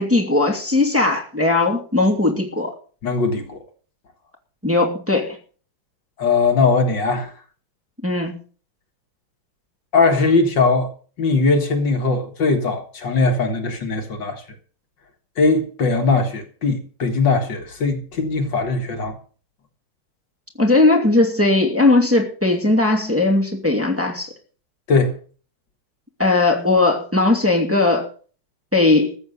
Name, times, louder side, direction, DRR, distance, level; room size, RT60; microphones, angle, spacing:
voice 1, 0.0-2.7 4.6-5.4 8.0-8.3 20.6-24.3 26.2-28.1 28.7-29.2, left 2 dB, 5° right, 2.4 m, -18 dB
voice 2, 3.0-3.6 6.2-7.3 9.9-10.9 11.2-14.4 15.4-19.2 24.9-25.1, left 3 dB, 60° left, 2.3 m, -19 dB
14.0 x 8.6 x 6.7 m
omnidirectional pair, 2.3 m